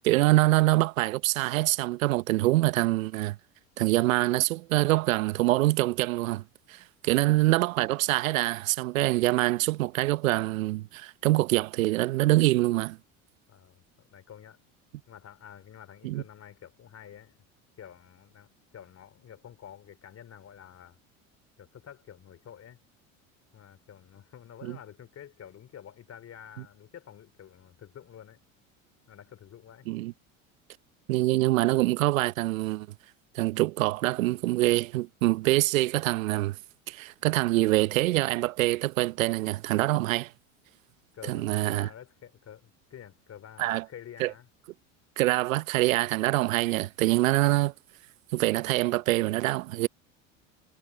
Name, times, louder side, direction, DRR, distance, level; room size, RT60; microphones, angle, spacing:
voice 1, 0.0-3.4 3.8-6.4 6.7-13.0 16.0-16.2 24.6-24.8 29.9-30.1 31.1-32.9 33.3-36.6 36.9-40.3 41.3-41.9 43.6-43.8 44.2-44.3 45.2-47.7 48.3-49.9, right 18 dB, 80° right, 0.9 m, -25 dB
voice 2, 7.1-7.4 13.5-14.6 15.1-17.4 17.8-21.0 21.6-22.8 23.5-28.4 29.1-29.9 41.1-44.5, left 9 dB, 40° left, 3.0 m, -49 dB
hypercardioid pair, 80°, 40 cm